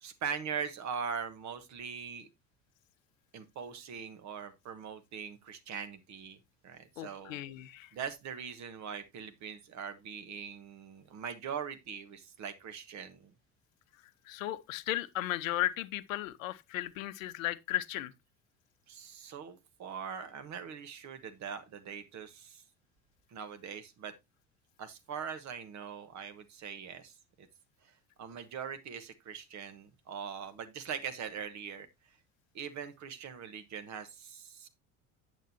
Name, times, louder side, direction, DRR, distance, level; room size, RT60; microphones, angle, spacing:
voice 1, 0.0-2.3 3.3-6.4 6.6-7.4 7.9-13.3 18.9-22.6 23.3-24.1 24.8-27.5 28.2-31.9 32.5-34.7, right 7 dB, 40° right, 1.3 m, -41 dB
voice 2, 7.0-7.9 14.3-18.1, left 15 dB, 60° left, 0.8 m, -35 dB
9.0 x 8.1 x 2.9 m
figure-of-eight pair, 65°, 44 cm